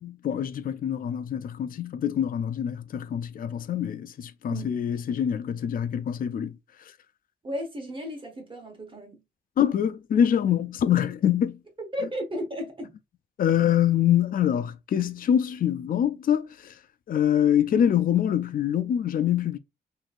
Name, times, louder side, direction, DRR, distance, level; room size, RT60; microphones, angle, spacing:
voice 1, 0.0-6.6 9.6-11.6 13.4-16.8 17.1-19.6, left 9 dB, 50° left, 0.4 m, -25 dB
voice 2, 4.5-5.0 7.4-9.2 11.8-13.0, equal, 30° right, 1.3 m, -35 dB
4.1 x 3.1 x 2.5 m
cardioid pair, 95°, 18 cm